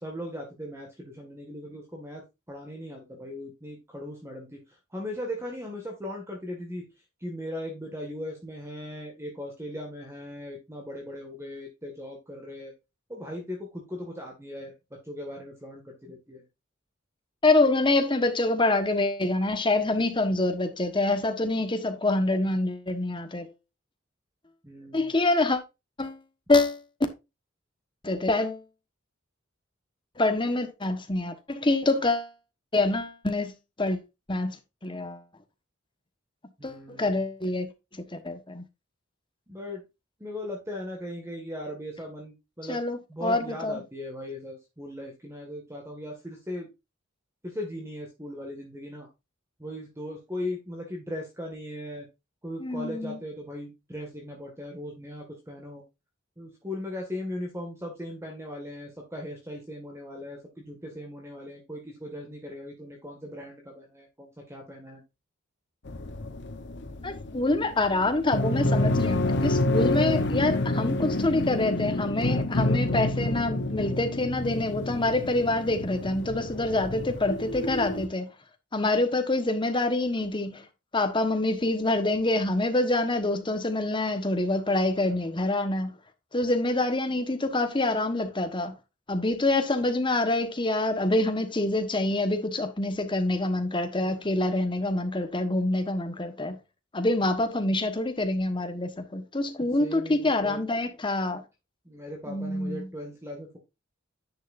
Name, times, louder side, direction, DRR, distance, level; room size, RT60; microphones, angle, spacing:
voice 1, 0.0-4.6 4.9-6.8 7.2-12.7 13.1-14.7 15.0-16.4 24.6-25.1 36.6-37.2 39.5-39.8 40.2-42.8 43.1-46.7 47.4-49.1 49.6-52.1 52.4-55.8 56.4-65.0 98.7-98.8 99.6-100.6 101.3-101.4 101.9-103.6, left 1 dB, 15° right, 1.9 m, -38 dB
voice 2, 17.4-23.5 24.9-25.6 26.0-26.2 26.5-26.8 28.0-28.6 30.2-32.3 32.7-34.0 34.3-35.2 36.6-37.7 38.0-38.6 42.7-43.8 52.6-53.2 67.0-78.3 78.7-80.7 80.9-85.9 86.3-88.7 89.1-96.6 96.9-101.4 102.3-102.9, left 2 dB, 25° left, 1.4 m, -26 dB
sound 1, 65.9-78.1, left 2 dB, 60° left, 1.0 m, -28 dB
10.0 x 6.5 x 2.6 m
head